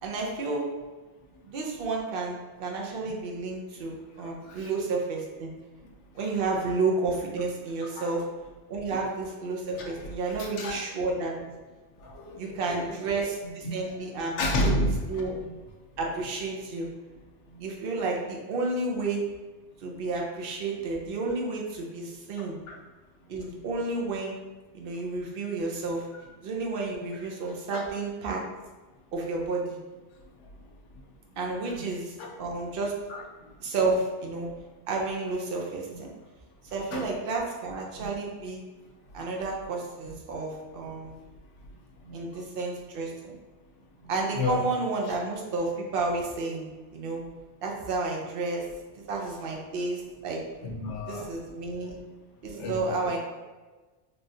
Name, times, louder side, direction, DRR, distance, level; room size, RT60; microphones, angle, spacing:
voice 1, 0.0-0.6 1.4-5.5 6.1-8.2 8.7-11.3 12.4-14.8 15.1-15.3 16.0-16.9 17.6-19.2 19.8-22.6 23.3-24.4 24.7-26.1 26.4-28.4 29.1-29.8 31.4-32.1 32.4-32.9 33.6-34.5 34.9-36.1 36.7-38.6 39.1-41.1 42.1-43.3 44.1-47.2 47.6-48.6 49.1-50.4 51.1-52.0 52.4-53.2, right 3 dB, 60° right, -1 dB, 0.7 m, -31 dB
voice 2, 10.4-10.8 12.0-13.0 13.6-13.7 14.1-15.5 22.4-22.8 23.5-23.7 27.7-27.9 31.6-31.8 32.2-32.3 33.1-33.2 36.9-37.1 37.9-38.1 40.1-40.2 42.0-42.2 44.4-44.6 50.6-51.3 52.5-53.1, left 1 dB, 85° left, 1 dB, 0.9 m, -32 dB
3.4 x 2.3 x 2.6 m, 1.2 s
omnidirectional pair, 1.2 m